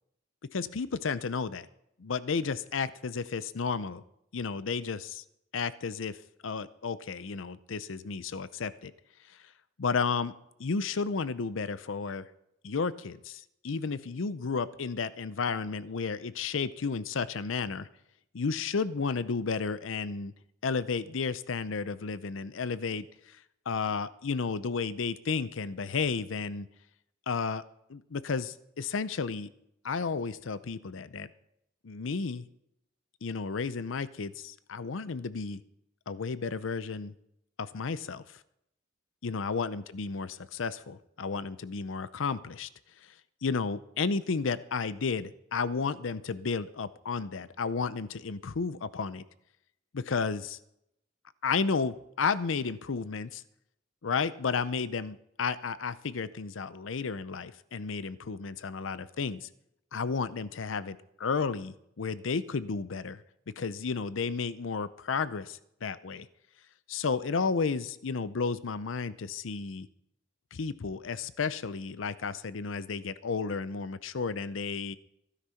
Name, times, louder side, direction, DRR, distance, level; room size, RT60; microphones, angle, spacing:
voice 1, 0.5-1.7 2.0-4.0 4.3-5.2 5.5-6.2 6.4-8.9 9.3-9.4 9.8-10.3 10.6-12.3 12.6-17.9 18.3-20.3 20.6-23.4 23.7-26.7 27.3-27.6 27.9-29.5 29.8-31.3 31.8-32.4 33.2-35.6 36.1-37.1 37.6-38.4 39.2-42.7 43.0-43.1 43.4-49.2 49.9-50.6 51.4-53.4 54.0-59.5 59.9-63.2 63.6-66.3 66.9-69.9 70.5-75.0, left 5 dB, 85° left, 16 dB, 0.6 m, -32 dB
15.5 x 10.0 x 5.7 m, 0.76 s
head